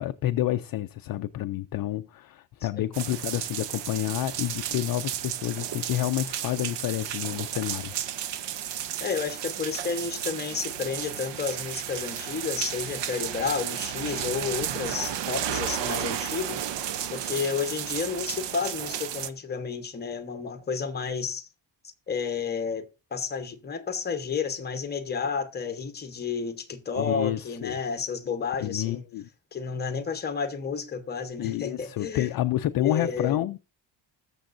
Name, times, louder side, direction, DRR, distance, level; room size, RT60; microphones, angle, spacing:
voice 1, 0.0-7.9 27.0-27.8 28.6-29.2 31.4-33.6, left 13 dB, 55° left, 0.4 m, -29 dB
sound 1, 2.9-19.3, right 10 dB, 70° right, 0.8 m, -33 dB
voice 2, 9.0-16.6 17.1-21.5 22.1-22.8 23.1-29.0 29.5-32.3 32.8-33.4, left 6 dB, 20° left, 1.0 m, -31 dB
20.0 x 7.0 x 2.6 m
cardioid pair, 175°, 45 cm